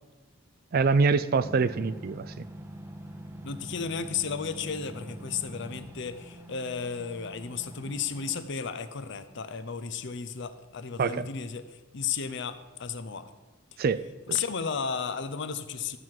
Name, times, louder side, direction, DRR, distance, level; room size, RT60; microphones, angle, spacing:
voice 1, 0.7-2.4 11.0-11.3 13.8-14.0, right 4 dB, 45° right, 15 dB, 0.4 m, -25 dB
sound 1, 1.4-8.4, right 1 dB, 10° right, 0.7 m, -44 dB
voice 2, 3.4-13.3 13.7-13.8 14.3-16.0, left 6 dB, 60° left, 11 dB, 0.6 m, -34 dB
12.5 x 4.7 x 7.4 m, 1.3 s
head